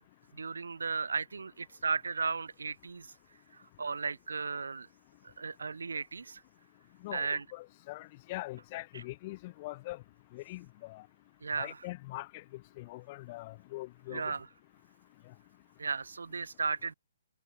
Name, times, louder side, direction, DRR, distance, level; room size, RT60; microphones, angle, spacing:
voice 1, 0.3-3.1 3.5-4.9 5.2-6.4 7.1-7.4 8.9-9.0 11.4-11.8 14.1-14.5 15.8-16.9, right 4 dB, 85° right, 0.4 m, -35 dB
voice 2, 7.0-10.0 10.3-11.0 11.6-12.4 12.8-14.3, left 20 dB, 30° left, 0.3 m, -42 dB
hypercardioid pair, 160°, 0 cm